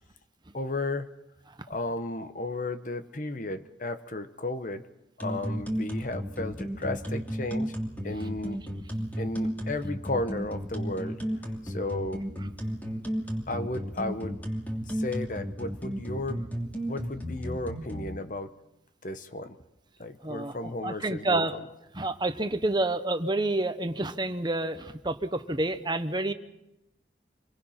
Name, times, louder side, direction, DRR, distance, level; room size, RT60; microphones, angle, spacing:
voice 1, 0.5-1.1 1.7-4.9 5.2-7.7 8.0-8.6 9.2-11.2 11.6-12.2 13.5-14.4 14.9-16.5 16.9-18.5 19.0-19.6 20.0-21.6, left 2 dB, 45° left, 10 dB, 1.1 m, -34 dB
sound 1, 5.2-18.0, equal, 10° left, 2.8 m, -33 dB
voice 2, 20.2-20.6 20.8-21.6 21.9-26.3, right 2 dB, 25° right, 9 dB, 1.1 m, -29 dB
26.0 x 22.0 x 5.8 m, 0.91 s
head